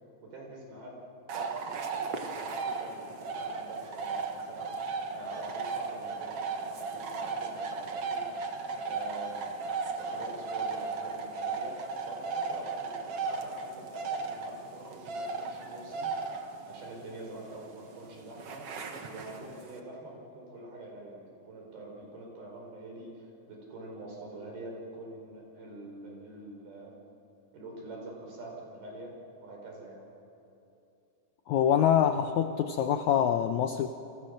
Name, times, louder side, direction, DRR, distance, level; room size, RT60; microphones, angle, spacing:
voice 1, 0.2-1.0 1.3-4.7 5.1-8.3 8.8-16.1 16.7-27.0 27.5-30.1, right 2 dB, 85° right, 0 dB, 6.6 m, -45 dB
sound 1, 1.3-19.8, right 4 dB, 50° right, 2.1 m, -36 dB
voice 2, 31.5-33.9, left 9 dB, 85° left, 7 dB, 1.7 m, -25 dB
30.0 x 24.0 x 6.5 m, 2.8 s
omnidirectional pair, 4.2 m